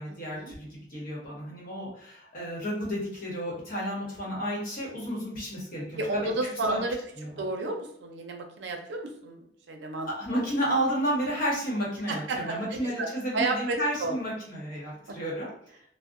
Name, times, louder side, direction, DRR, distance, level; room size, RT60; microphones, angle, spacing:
voice 1, 0.0-6.3 6.7-6.8 7.2-7.3 10.0-15.5, equal, 55° left, -4 dB, 1.0 m, -32 dB
voice 2, 6.0-7.0 7.4-10.4 12.1-13.1 13.3-14.2 15.1-15.2, right 2 dB, 85° right, 3 dB, 0.5 m, -32 dB
2.7 x 2.0 x 2.4 m, 0.72 s
head